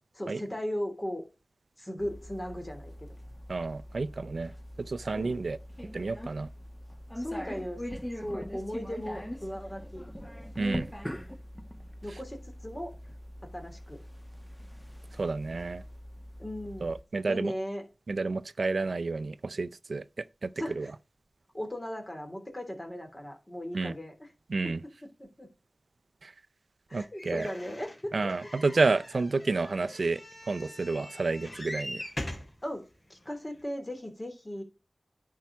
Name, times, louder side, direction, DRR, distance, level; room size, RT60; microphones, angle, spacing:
voice 1, 0.1-1.2 1.8-3.1 5.1-5.3 7.2-7.8 8.2-10.0 12.0-12.9 13.4-14.0 16.4-16.9 17.2-17.8 20.6-20.9 21.5-24.3 24.6-25.5 26.9-28.3 32.6-34.6, equal, 30° left, 3.1 m, -37 dB
sound 1, 2.0-17.0, equal, 10° left, 1.2 m, -42 dB
voice 2, 3.5-4.5 4.8-5.6 5.9-6.5 10.6-10.9 15.2-15.8 16.8-17.5 18.1-20.5 20.8-20.9 23.7-23.9 24.5-24.8 26.2-26.3 26.9-27.5 28.1-30.2 30.5-32.0, right 3 dB, 85° right, 0.4 m, -30 dB
sound 2, 27.2-32.5 33.3-33.4 33.6-33.7, left 1 dB, 45° left, 3.0 m, -42 dB
10.5 x 4.7 x 6.0 m
wide cardioid pair, 40°, 0 cm